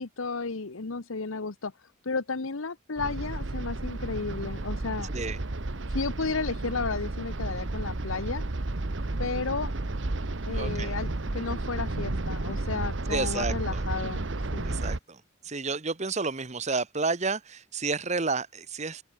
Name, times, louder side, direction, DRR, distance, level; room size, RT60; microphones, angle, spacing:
voice 1, 0.0-1.7 2.0-5.1 5.9-8.4 9.2-9.7 10.4-14.3 14.5-14.8, left 4 dB, 85° left, 1.1 m, -33 dB
sound 1, 3.0-15.0, right 2 dB, 65° right, 1.2 m, -32 dB
voice 2, 5.0-5.4 10.5-10.9 13.1-13.8 14.6-19.0, right 4 dB, 35° right, 1.2 m, -31 dB
open air
head